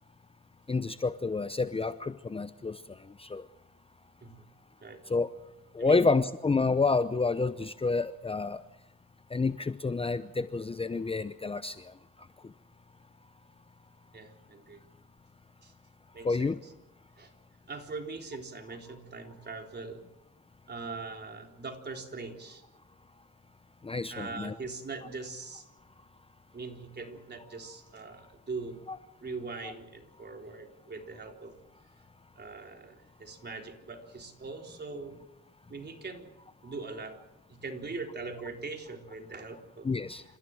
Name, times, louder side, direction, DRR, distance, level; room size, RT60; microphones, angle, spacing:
voice 1, 0.7-2.8 3.2-3.4 5.1-5.3 5.7-8.6 9.3-11.8 16.2-16.5 23.8-24.5 28.9-29.0 29.6-29.7 39.8-40.2, left 4 dB, 20° left, 12 dB, 0.8 m, -29 dB
voice 2, 5.8-6.1 14.1-14.8 15.6-15.7 16.1-16.7 17.2-17.3 17.7-20.0 20.7-22.6 24.1-25.7 26.5-28.8 29.2-31.6 32.4-35.2 35.7-36.3 36.6-37.2 37.5-39.9, right 3 dB, 35° right, 3 dB, 3.9 m, -41 dB
28.5 x 15.0 x 7.7 m, 0.98 s
cardioid pair, 90°, 30 cm